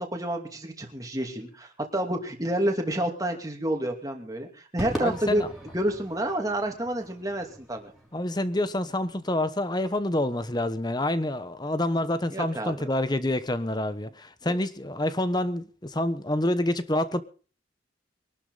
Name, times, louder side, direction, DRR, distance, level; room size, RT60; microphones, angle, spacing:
voice 1, 0.0-5.5 5.7-7.9 12.3-12.9, right 1 dB, 20° right, 2.7 m, -29 dB
Crowd / Fireworks, 4.8-9.3, equal, ahead, 4.4 m, -40 dB
voice 2, 5.0-5.5 8.1-17.2, left 1 dB, 20° left, 1.1 m, -27 dB
23.0 x 12.0 x 4.0 m
head